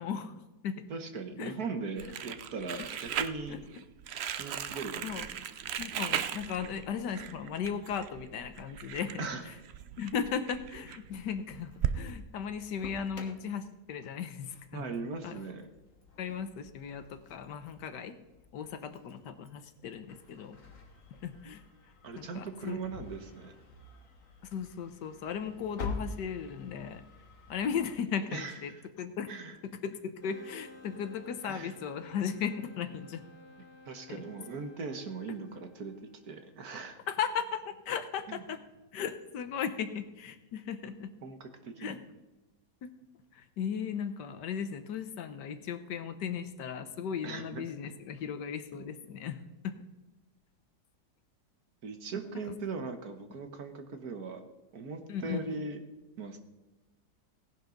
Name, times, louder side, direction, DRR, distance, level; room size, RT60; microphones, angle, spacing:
voice 1, 0.0-0.8 1.4-1.5 2.7-2.8 3.5-3.6 5.0-5.3 5.8-9.3 10.0-14.8 15.2-15.4 16.2-18.2 18.5-20.6 21.2-21.6 22.2-22.8 24.5-27.0 27.5-28.7 29.0-29.3 29.8-33.2 34.1-34.2 37.1-38.6 38.9-41.1 41.8-42.0 42.8-42.9 43.3-49.7 52.5-52.6 55.1-55.4, left 7 dB, 75° left, 10 dB, 1.5 m, -36 dB
voice 2, 0.9-3.6 4.4-5.4 5.7-5.8 9.2-9.5 14.7-15.7 22.0-23.5 28.3-28.8 29.3-29.6 31.4-31.7 33.8-35.9 36.3-37.0 38.3-38.4 41.2-42.0 47.2-47.7 51.8-54.4 54.7-55.8 56.2-56.4, right 4 dB, 60° right, 7 dB, 1.7 m, -39 dB
Crumpling crinkling, 2.0-12.0, right 9 dB, 80° right, 0.5 m, -38 dB
Engine starting, 11.0-27.9, left 3 dB, 50° left, 1.8 m, -48 dB
sound 1, 30.2-36.6, left 2 dB, 30° left, 1.7 m, -54 dB
17.5 x 10.5 x 3.9 m, 1.1 s
omnidirectional pair, 1.9 m